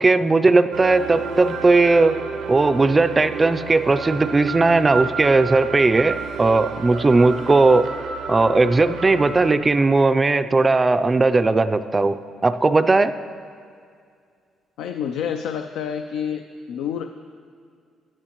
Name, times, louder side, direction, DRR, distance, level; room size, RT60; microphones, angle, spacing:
voice 1, 0.0-2.2 2.5-7.9 8.3-13.1, right 3 dB, 25° right, 11 dB, 0.3 m, -17 dB
sound 1, 0.7-9.5, right 5 dB, 85° right, 0.7 m, -31 dB
voice 2, 14.8-16.4 16.7-17.1, left 8 dB, 90° left, 7 dB, 0.4 m, -28 dB
15.5 x 10.5 x 3.0 m, 2.3 s
cardioid pair, 90°, 0 cm